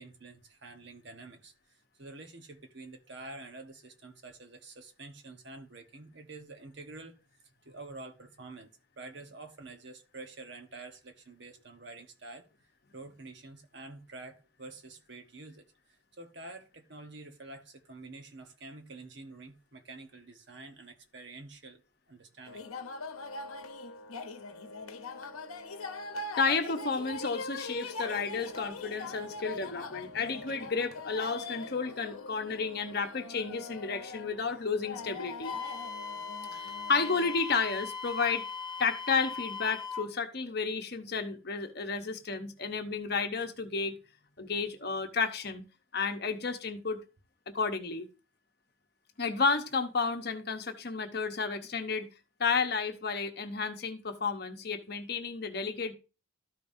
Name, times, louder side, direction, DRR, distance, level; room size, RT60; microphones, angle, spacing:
voice 1, 0.0-7.2 7.4-12.5 12.9-21.8 22.1-22.6, right 2 dB, 55° right, 1.2 m, -48 dB
sound 1, 22.5-37.3, left 3 dB, 90° left, 0.8 m, -42 dB
voice 2, 26.4-35.6 36.5-38.5 38.8-43.9 44.4-45.6 45.9-47.0 47.5-48.1 49.2-52.1 52.4-55.9, left 4 dB, 50° left, 1.0 m, -32 dB
Wind instrument woodwind instrument, 35.4-40.1, left 5 dB, 20° left, 0.8 m, -39 dB
13.0 x 5.3 x 2.7 m
head